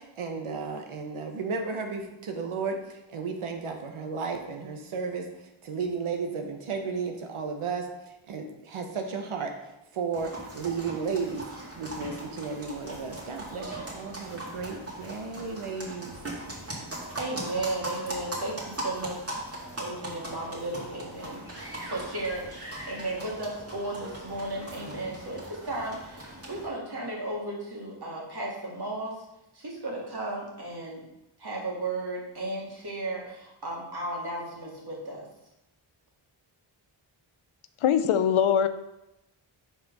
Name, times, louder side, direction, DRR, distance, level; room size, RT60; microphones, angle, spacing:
voice 1, 0.0-9.5 9.9-11.4 11.8-16.2, right 5 dB, 80° right, 4 dB, 0.9 m, -34 dB
sound 1, 10.1-26.7, right 1 dB, 30° right, 2.2 m, -40 dB
voice 2, 17.2-29.2 29.5-31.1 31.4-35.3, right 2 dB, 50° right, -3 dB, 2.3 m, -35 dB
voice 3, 37.8-38.7, left 8 dB, 80° left, 12 dB, 0.6 m, -22 dB
5.7 x 4.5 x 5.2 m, 0.91 s
cardioid pair, 50°, 49 cm